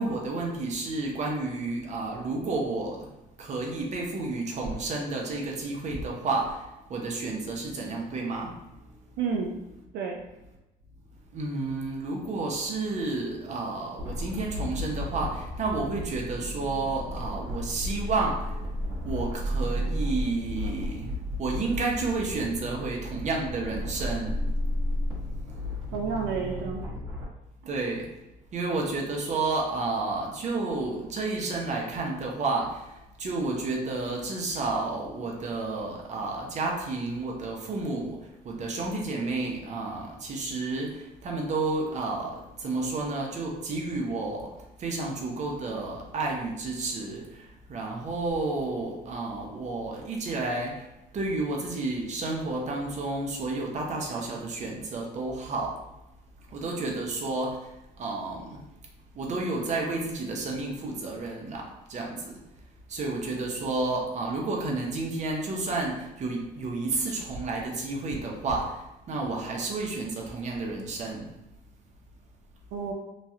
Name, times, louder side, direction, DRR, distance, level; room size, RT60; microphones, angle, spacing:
voice 1, 0.0-3.1 3.4-8.9 11.3-18.6 19.0-21.1 21.4-24.4 27.7-28.1 28.5-44.5 44.8-50.9 51.1-55.8 56.5-58.6 59.1-62.4 62.9-71.3, right 3 dB, 45° right, -1 dB, 0.7 m, -31 dB
voice 2, 9.2-9.6 9.9-10.2 25.9-26.9 72.7-72.9, right 5 dB, 80° right, 1 dB, 0.4 m, -30 dB
sound 1, 14.0-27.2, equal, 25° right, 1.0 m, -33 dB
3.0 x 2.3 x 2.7 m, 0.94 s
cardioid pair, 110°, 17 cm